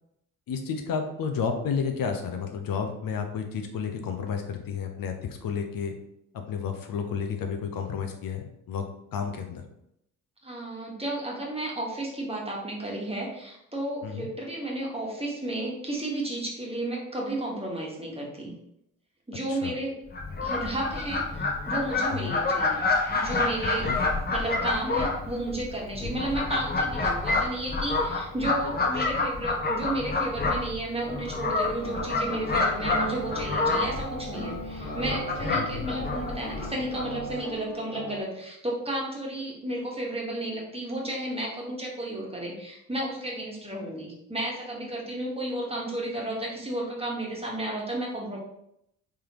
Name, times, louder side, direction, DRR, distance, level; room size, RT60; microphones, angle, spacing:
voice 1, 0.5-5.9 6.3-8.9 9.1-9.6 14.0-14.3 19.5-19.7 22.1-22.3 23.8-24.0 26.0-26.2 35.6-35.9, left 6 dB, 50° left, 4 dB, 0.8 m, -31 dB
voice 2, 10.4-18.5 19.3-20.0 20.4-22.9 23.1-23.9 24.3-48.4, right 1 dB, 15° right, -2 dB, 1.4 m, -33 dB
Fowl, 20.1-37.4, left 3 dB, 20° left, 0.9 m, -28 dB
sound 1, 31.8-38.2, equal, 75° left, 1.1 m, -38 dB
3.5 x 3.3 x 3.0 m, 0.79 s
hypercardioid pair, 45°, 43 cm